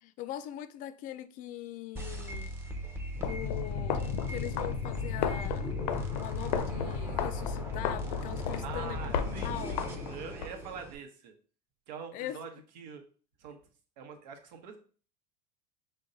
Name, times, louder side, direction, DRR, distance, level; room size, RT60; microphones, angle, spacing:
voice 1, 0.0-2.5 3.2-5.7 6.1-9.8 12.1-12.4, left 12 dB, 40° left, 0.4 m, -41 dB
sound 1, 2.0-11.0, equal, 10° right, 0.6 m, -38 dB
sound 2, 3.1-10.5, left 8 dB, 80° left, 0.6 m, -34 dB
voice 2, 8.6-11.3 11.9-13.0 13.4-13.6 14.0-14.8, right 6 dB, 85° right, 1.0 m, -44 dB
5.3 x 2.2 x 3.8 m
supercardioid pair, 130°, 21 cm